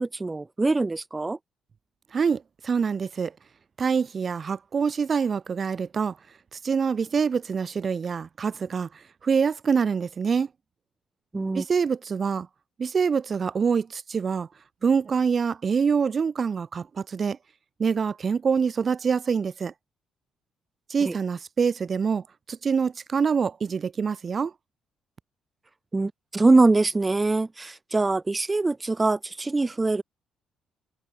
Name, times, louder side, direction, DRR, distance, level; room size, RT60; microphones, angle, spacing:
voice 1, 0.0-1.4 11.3-11.6 21.1-21.2 25.9-30.0, right 3 dB, 20° right, 0.5 m, -23 dB
voice 2, 2.1-3.3 3.8-6.2 6.5-10.5 11.5-12.5 12.8-14.5 14.8-17.4 17.8-19.7 20.9-24.5, right 6 dB, 40° right, 2.3 m, -25 dB
figure-of-eight pair, 45°, 0 cm